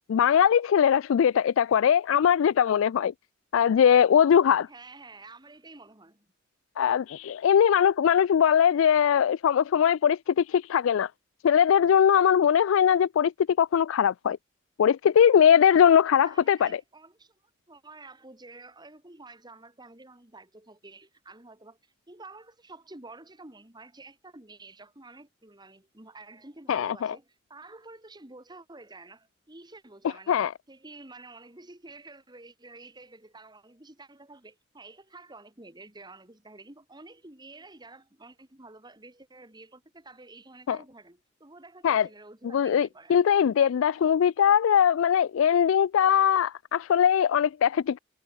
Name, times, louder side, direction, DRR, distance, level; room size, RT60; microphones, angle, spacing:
voice 1, 0.1-3.1 3.5-4.7 6.8-11.1 11.4-13.3 13.6-14.4 14.8-16.8 26.7-27.1 30.3-30.5 40.7-40.8 41.8-42.1 42.5-48.0, left 8 dB, 80° left, 0.3 m, -21 dB
voice 2, 4.7-6.3 16.2-17.4 17.7-30.4 30.7-43.2, right 2 dB, 20° right, 2.4 m, -49 dB
head